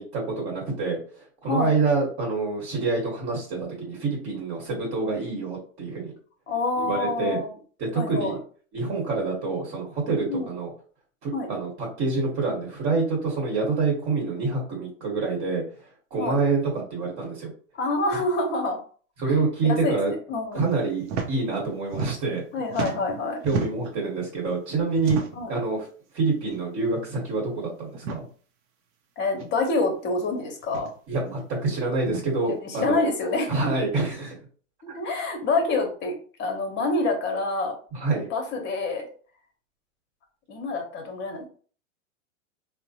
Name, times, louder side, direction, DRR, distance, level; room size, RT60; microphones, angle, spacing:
voice 1, 0.0-6.1 6.8-7.4 7.8-8.4 8.7-10.7 11.2-17.5 19.2-20.1 20.5-22.4 23.4-25.2 25.5-25.9 26.1-28.3 31.1-33.0 33.5-34.4 34.9-35.0 37.9-38.3, right 3 dB, 35° right, -3 dB, 1.3 m, -27 dB
voice 2, 6.5-7.5 7.9-8.4 10.3-10.5 11.3-11.5 16.2-16.4 17.8-18.8 19.2-19.3 19.6-20.7 22.5-23.4 25.4-25.5 29.2-30.9 32.5-33.5 34.8-36.1 36.4-37.7 38.3-39.1 40.5-41.5, left 2 dB, 30° left, 3 dB, 0.9 m, -27 dB
sound 1, 21.0-21.3 21.6-22.4 22.7-24.0 25.0-25.5 26.4-26.6 26.9-27.0 27.9-28.2 29.4-29.5 30.6-30.9 32.0-32.2, right 4 dB, 60° right, 0.7 m, -32 dB
3.6 x 2.1 x 2.8 m, 0.42 s
hypercardioid pair, 125°, 40 cm